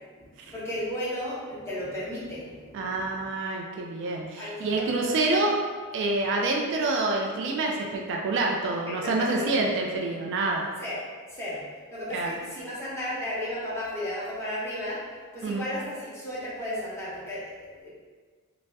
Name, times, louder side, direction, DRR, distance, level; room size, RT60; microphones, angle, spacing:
voice 1, 0.0-3.2 4.4-5.5 8.9-9.5 10.8-11.0 11.3-11.6 11.9-15.0 15.3-17.9, left 1 dB, 10° left, -9 dB, 0.7 m, -34 dB
voice 2, 2.7-5.5 5.9-10.7 12.1-12.3 15.4-15.7, right 2 dB, 55° right, 1 dB, 0.3 m, -27 dB
3.3 x 2.0 x 2.6 m, 1.5 s
head